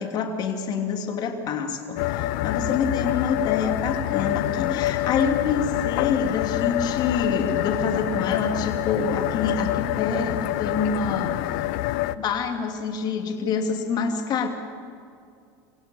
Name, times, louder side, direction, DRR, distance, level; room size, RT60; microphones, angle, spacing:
voice 1, 0.0-11.4 12.2-14.5, left 5 dB, 40° left, 4 dB, 3.0 m, -27 dB
sound 1, 2.0-12.1, left 16 dB, 65° left, 0.7 m, -26 dB
26.0 x 16.5 x 7.2 m, 2.3 s
supercardioid pair, 130°, 10 cm